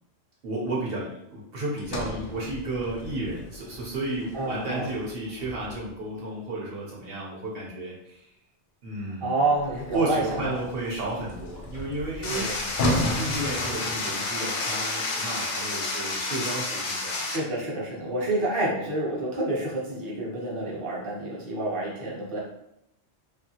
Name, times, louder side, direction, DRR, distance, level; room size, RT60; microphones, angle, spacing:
voice 1, 0.4-8.3 8.8-9.5 9.9-17.2, right 2 dB, 60° right, -4 dB, 0.8 m, -33 dB
Sliding door, 1.8-6.0 9.5-14.5, left 1 dB, 60° left, 0.6 m, -34 dB
voice 2, 4.3-4.9 9.2-10.5 12.2-12.6 17.2-22.4, right 2 dB, 35° right, -4 dB, 0.6 m, -28 dB
sound 1, 12.2-17.4, left 2 dB, 85° left, 0.9 m, -30 dB
2.6 x 2.4 x 2.7 m, 0.80 s
omnidirectional pair, 1.2 m